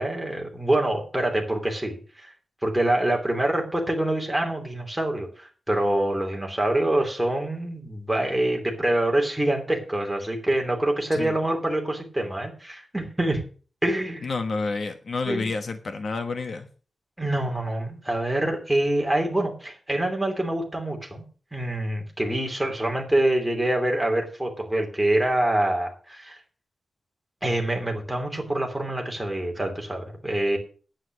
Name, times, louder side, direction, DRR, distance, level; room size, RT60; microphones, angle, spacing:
voice 1, 0.0-2.3 2.6-13.4 13.8-14.3 15.3-15.5 17.2-21.2 21.5-26.4 27.4-30.6, right 1 dB, 5° right, 1 dB, 3.1 m, -25 dB
voice 2, 14.2-16.7, left 3 dB, 55° left, 7 dB, 1.2 m, -29 dB
9.9 x 9.0 x 6.1 m, 0.38 s
wide cardioid pair, 150°, 0 cm